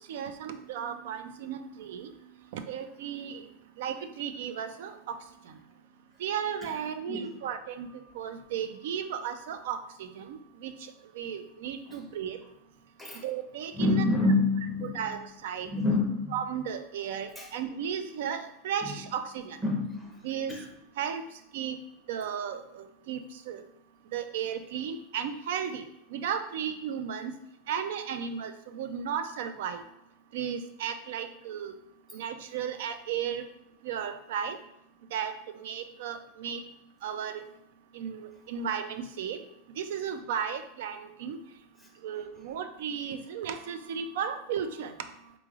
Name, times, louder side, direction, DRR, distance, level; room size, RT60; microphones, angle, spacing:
voice 1, 0.1-2.1 2.5-3.4 3.8-5.2 6.2-7.9 8.2-10.4 10.6-10.7 11.2-12.4 13.2-14.1 14.9-15.7 16.3-19.6 20.2-20.5 21.0-21.2 21.5-21.8 22.1-23.6 24.1-25.8 26.1-27.3 27.7-29.8 30.3-31.7 32.1-33.4 33.8-34.6 35.1-36.6 37.0-37.4 37.9-39.4 39.8-41.4 42.0-44.9, right 8 dB, 70° right, 10 dB, 0.4 m, -34 dB
voice 2, 13.7-15.2 15.6-16.4 17.4-17.5 18.8-18.9 19.6-20.2 20.5-20.7, left 2 dB, 5° right, -2 dB, 0.7 m, -27 dB
3.9 x 3.0 x 2.4 m, 0.83 s
supercardioid pair, 155°, 0 cm